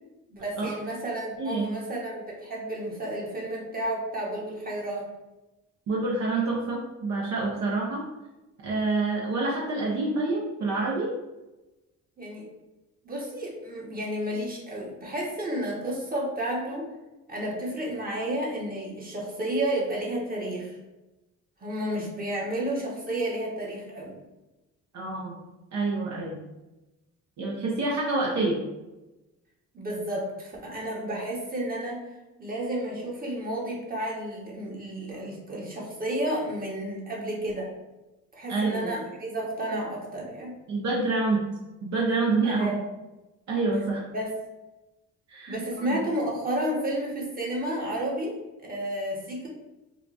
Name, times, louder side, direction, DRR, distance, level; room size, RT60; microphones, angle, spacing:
voice 1, 0.3-5.1 12.2-12.5 13.0-16.9 17.3-20.8 21.6-24.2 29.7-32.0 32.4-37.7 38.3-40.5 42.4-42.8 44.1-44.3 45.5-49.5, right 1 dB, 30° right, -3 dB, 1.2 m, -31 dB
voice 2, 1.4-1.7 5.9-8.0 8.6-11.1 24.9-25.4 25.7-26.4 27.4-28.6 38.5-38.9 40.7-41.5 41.8-42.7 43.5-44.0 45.3-45.6 45.9-46.0, right 3 dB, 65° right, -3 dB, 0.7 m, -27 dB
4.8 x 2.3 x 2.5 m, 1.0 s
cardioid pair, 90°, 30 cm